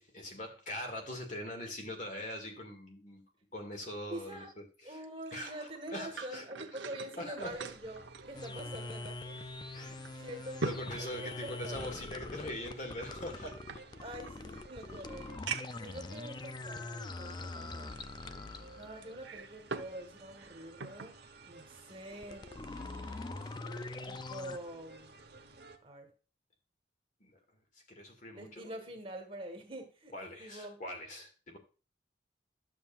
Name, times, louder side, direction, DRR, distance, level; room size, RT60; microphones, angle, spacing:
voice 1, 0.0-3.2 3.5-5.1 5.3-6.4 7.2-7.6 9.7-10.0 10.6-13.6 27.2-27.4 27.9-28.8 30.1-31.6, left 1 dB, 40° left, 3 dB, 2.0 m, -42 dB
voice 2, 4.1-4.5 4.8-9.4 9.7-10.7 11.0-11.9 14.0-18.0 18.8-22.5 24.0-25.1 25.8-26.1 28.3-30.1 30.4-30.8, right 1 dB, 30° right, 4 dB, 1.5 m, -46 dB
sound 1, 5.0-9.0 9.4-9.5 10.0-12.0 12.9-14.3 14.9-15.0 15.5-15.9 16.6-16.7 19.0-20.0 20.3-21.2 21.6-21.8, right 4 dB, 80° right, 0.9 m, -43 dB
sound 2, 7.4-25.8, right 3 dB, 60° right, 1.1 m, -55 dB
sound 3, 8.3-19.1 22.1-24.6, left 3 dB, 25° left, 0.4 m, -44 dB
11.5 x 7.2 x 2.4 m, 0.34 s
head